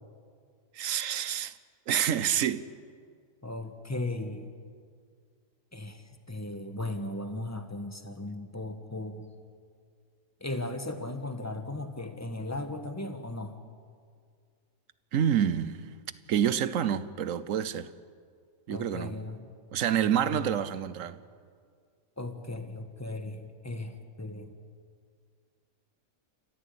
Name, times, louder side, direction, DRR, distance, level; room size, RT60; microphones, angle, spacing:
voice 1, 0.8-1.5 1.9-2.7 15.1-15.9 16.3-17.9 18.7-19.1 19.7-21.2, right 9 dB, 70° right, 1.2 m, -28 dB
voice 2, 3.4-4.5 5.7-9.3 10.4-13.6 18.7-19.5 20.0-20.5 22.2-24.5, left 2 dB, 10° left, 1.4 m, -37 dB
28.5 x 14.0 x 8.5 m
omnidirectional pair, 1.4 m